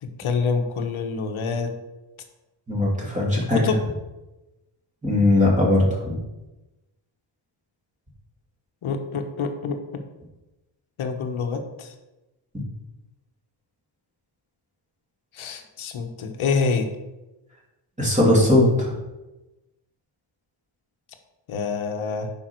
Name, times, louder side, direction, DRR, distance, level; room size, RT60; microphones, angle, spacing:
voice 1, 0.0-1.8 3.3-3.8 8.8-10.0 11.0-11.9 15.3-16.9 21.5-22.3, left 4 dB, 75° left, 5 dB, 1.3 m, -27 dB
voice 2, 2.7-3.6 5.0-6.2 18.0-18.9, left 1 dB, 15° right, -5 dB, 2.7 m, -19 dB
9.4 x 5.6 x 4.6 m, 1.0 s
wide cardioid pair, 135°, 50 cm